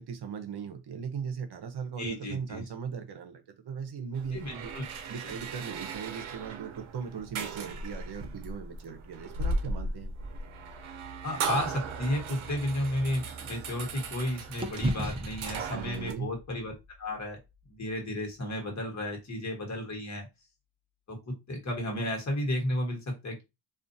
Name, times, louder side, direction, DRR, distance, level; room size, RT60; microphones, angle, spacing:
voice 1, 0.0-4.7 5.1-10.1 15.7-16.3, right 7 dB, 55° right, 0.8 m, -38 dB
voice 2, 2.0-2.6 4.3-4.8 5.2-5.3 11.2-16.7 17.0-17.4 17.7-20.3 21.1-23.4, left 1 dB, 35° left, 1.4 m, -33 dB
sound 1, 4.1-16.1, right 3 dB, 85° right, 0.7 m, -37 dB
sound 2, 12.3-14.2 14.6-18.8, right 1 dB, 10° right, 0.4 m, -39 dB
2.5 x 2.4 x 2.6 m
cardioid pair, 80°, 47 cm